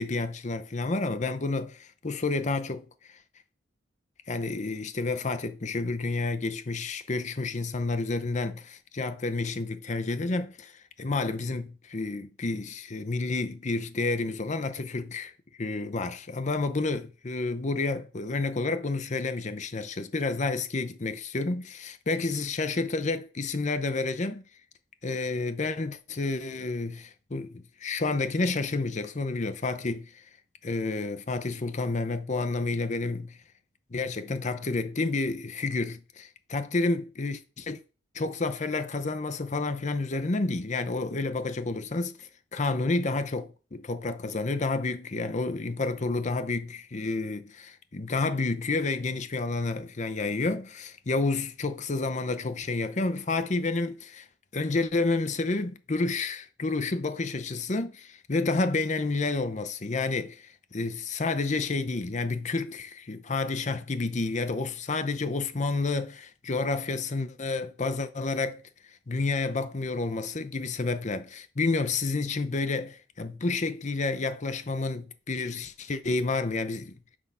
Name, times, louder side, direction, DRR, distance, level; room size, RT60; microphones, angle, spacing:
voice 1, 0.0-2.9 4.3-10.7 11.0-15.3 15.6-24.4 25.0-30.2 30.6-33.4 33.9-37.8 38.1-54.3 54.5-68.6 69.1-77.0, left 3 dB, 40° left, 0.7 m, -30 dB
6.2 x 4.7 x 5.5 m
head